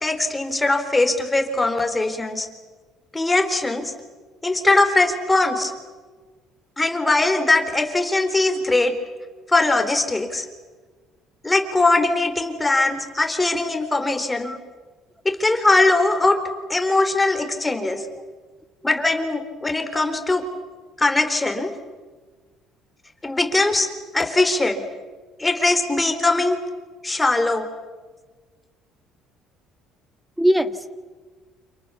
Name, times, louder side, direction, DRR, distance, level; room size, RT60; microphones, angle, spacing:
voice 1, 0.0-2.5 3.1-3.9 4.4-5.7 6.8-8.9 9.5-10.5 11.4-14.5 15.2-16.4 16.7-18.0 18.8-20.4 21.0-21.7 23.2-23.9 24.1-24.8 25.4-26.6 27.0-27.7, left 2 dB, 10° left, 6 dB, 4.0 m, -20 dB
voice 2, 17.9-18.3 30.4-30.9, equal, 5° right, 10 dB, 1.8 m, -23 dB
29.5 x 28.0 x 7.1 m, 1.4 s
cardioid pair, 115°, 0 cm